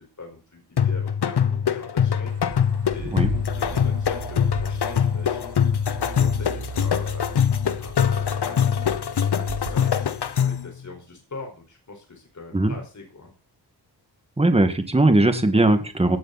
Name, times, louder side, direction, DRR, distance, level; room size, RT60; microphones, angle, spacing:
voice 1, 0.2-5.8 6.2-7.3 7.8-9.0 9.3-13.3, left 3 dB, 45° left, 2 dB, 5.0 m, -42 dB
sound 1, 0.8-10.7, left 8 dB, 70° left, 1.2 m, -23 dB
sound 2, 2.3-10.6, right 5 dB, 85° right, 7.6 m, -38 dB
voice 2, 14.4-16.2, right 2 dB, 15° right, 8 dB, 1.9 m, -19 dB
18.0 x 12.0 x 4.2 m, 0.34 s
wide cardioid pair, 105°, 42 cm